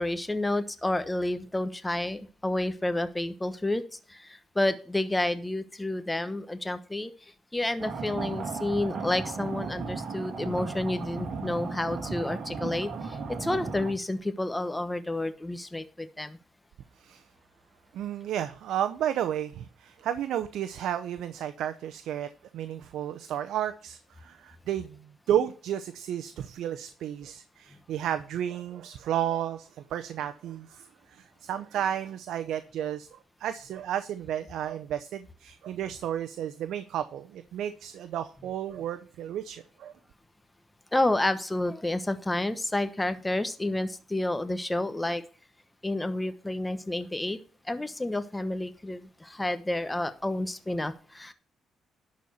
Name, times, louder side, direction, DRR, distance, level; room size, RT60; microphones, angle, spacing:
voice 1, 0.0-7.1 7.5-16.4 40.9-45.2 45.8-47.4 47.6-51.3, left 1 dB, 10° left, 1.1 m, -30 dB
sound 1, 7.8-13.9, right 4 dB, 55° right, 2.3 m, -35 dB
voice 2, 17.9-39.9, right 10 dB, 80° right, 0.6 m, -32 dB
11.5 x 4.2 x 6.8 m
cardioid pair, 90°, 0 cm